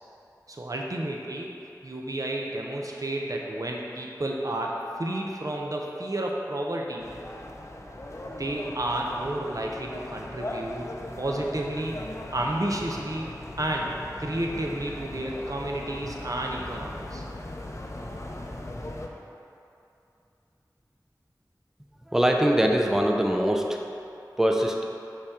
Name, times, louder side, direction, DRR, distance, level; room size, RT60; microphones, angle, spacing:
voice 1, 0.5-1.5 1.8-7.1 8.4-10.9 11.2-12.0 12.3-13.3 13.6-13.9 14.2-17.2, right 1 dB, 50° right, -1 dB, 0.7 m, -31 dB
sound 1, 7.0-19.1, left 1 dB, 40° left, 0.5 m, -39 dB
voice 2, 22.1-23.8 24.4-24.8, equal, 5° right, 1 dB, 0.5 m, -22 dB
5.3 x 4.9 x 3.6 m, 2.7 s
wide cardioid pair, 40°, 7 cm